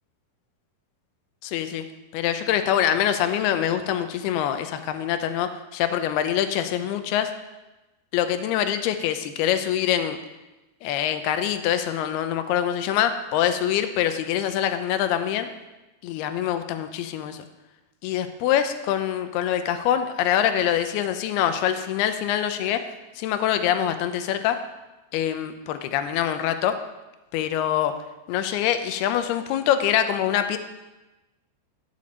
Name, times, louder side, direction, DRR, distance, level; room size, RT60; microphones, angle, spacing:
voice 1, 1.4-1.8 2.1-7.3 8.1-10.2 10.8-15.5 16.0-17.5 18.0-22.8 23.2-24.6 25.1-26.8 27.3-27.9 28.3-30.6, left 10 dB, 80° left, 9 dB, 2.7 m, -24 dB
14.0 x 7.0 x 8.0 m, 1.1 s
omnidirectional pair, 4.7 m